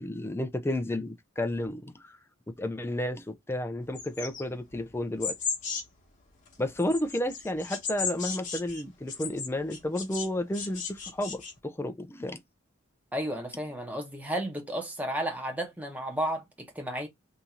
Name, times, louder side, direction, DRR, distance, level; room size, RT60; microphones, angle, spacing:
voice 1, 0.0-2.2 2.6-5.3 6.6-12.4, left 1 dB, 10° left, 0.4 m, -32 dB
sound 1, 3.9-6.0 6.5-10.3 10.5-11.5, left 5 dB, 40° left, 1.2 m, -36 dB
voice 2, 13.1-17.1, right 1 dB, 10° right, 1.1 m, -33 dB
2.9 x 2.7 x 3.6 m
head